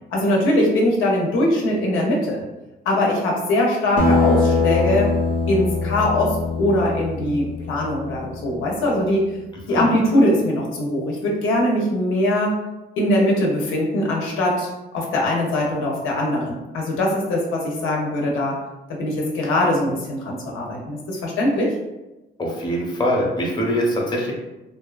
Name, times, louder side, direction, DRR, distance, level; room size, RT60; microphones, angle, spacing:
voice 1, 0.1-2.4 2.9-5.1 5.5-9.4 9.7-12.6 13.0-18.6 18.9-21.7, left 1 dB, 90° left, -2 dB, 0.6 m, -21 dB
Acoustic guitar, 4.0-8.8, left 3 dB, 45° right, 0.6 m, -22 dB
voice 2, 22.4-24.3, equal, 20° left, -2 dB, 0.7 m, -23 dB
2.5 x 2.3 x 2.3 m, 1.0 s
cardioid pair, 90°, 20 cm